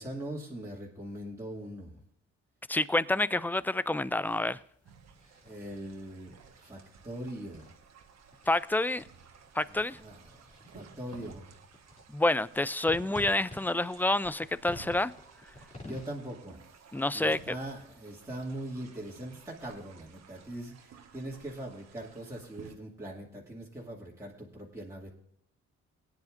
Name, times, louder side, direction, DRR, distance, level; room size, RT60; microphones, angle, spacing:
voice 1, 0.0-2.0 5.4-6.3 6.6-7.7 9.7-10.4 10.7-11.4 15.9-16.7 17.1-25.1, right 1 dB, 10° right, 2.4 m, -41 dB
sound 1, 2.7-16.1, left 1 dB, 25° left, 2.6 m, -53 dB
voice 2, 2.7-4.6 8.5-9.0 9.5-10.0 12.1-15.1 15.8-15.9 16.9-17.4, left 2 dB, 5° left, 0.3 m, -28 dB
sound 2, 4.8-22.8, right 6 dB, 60° right, 1.4 m, -56 dB
19.5 x 9.8 x 2.6 m
cardioid pair, 90°, 30 cm